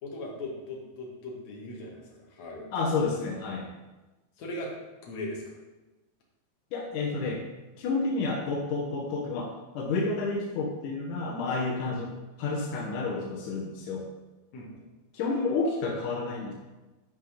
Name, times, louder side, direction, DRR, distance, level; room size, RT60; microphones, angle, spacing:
voice 1, 0.0-2.7 4.4-4.7 5.0-5.4 11.9-12.0 14.5-14.8, left 1 dB, 50° left, -2 dB, 2.5 m, -39 dB
voice 2, 2.7-3.7 6.7-7.4 7.8-12.1 12.4-14.1 15.1-16.5, left 3 dB, 80° left, -1 dB, 1.8 m, -30 dB
11.5 x 5.6 x 5.1 m, 1.1 s
omnidirectional pair, 5.4 m